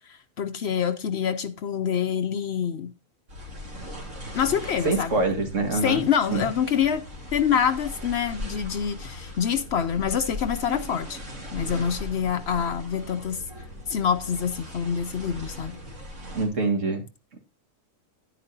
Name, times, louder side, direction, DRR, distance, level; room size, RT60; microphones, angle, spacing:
voice 1, 0.1-2.9 4.3-5.1 5.7-7.0 7.3-11.2 11.5-13.4 13.9-15.8, left 8 dB, 60° left, 0.8 m, -26 dB
sound 1, 3.3-16.5, left 1 dB, 90° right, 3.6 m, -39 dB
voice 2, 4.8-6.0 6.3-6.4 16.3-17.0, right 3 dB, 65° right, 2.1 m, -24 dB
11.0 x 9.4 x 2.6 m
omnidirectional pair, 1.4 m